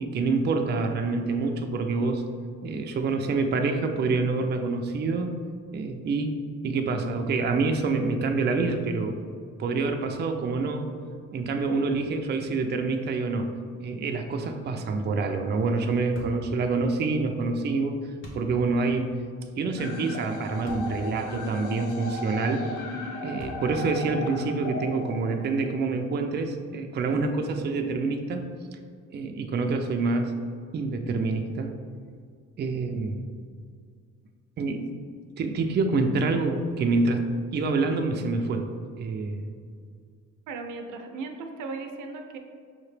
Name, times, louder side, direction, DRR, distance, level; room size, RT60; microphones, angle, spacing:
voice 1, 0.0-2.2 2.6-5.3 5.7-6.4 6.6-9.2 9.6-10.9 11.3-13.5 13.8-18.0 18.4-19.2 19.6-22.7 23.2-28.4 29.1-30.3 30.7-31.8 32.6-33.2 34.6-34.9 35.4-37.2 37.5-38.7 39.0-39.5, right 3 dB, 35° right, 4 dB, 0.4 m, -27 dB
sound 1, 16.1-16.5 18.2-18.5 20.6-20.9 21.6-21.7 23.4-23.9, left 1 dB, 40° left, 1.1 m, -41 dB
sound 2, 19.8-25.8, left 2 dB, 85° left, 0.6 m, -36 dB
voice 2, 40.5-42.4, right 3 dB, 85° right, 5 dB, 0.5 m, -37 dB
5.6 x 2.8 x 3.2 m, 2.1 s
cardioid pair, 90°, 30 cm